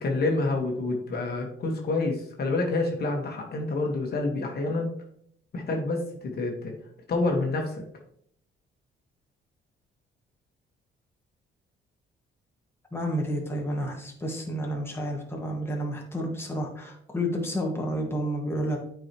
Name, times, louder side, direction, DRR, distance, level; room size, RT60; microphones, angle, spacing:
voice 1, 0.0-4.9 5.5-6.7 7.1-7.8, left 2 dB, 55° left, 1 dB, 1.5 m, -28 dB
voice 2, 12.9-18.8, equal, 10° left, 0 dB, 1.6 m, -30 dB
8.7 x 4.8 x 3.0 m, 0.66 s
cardioid pair, 90°, 20 cm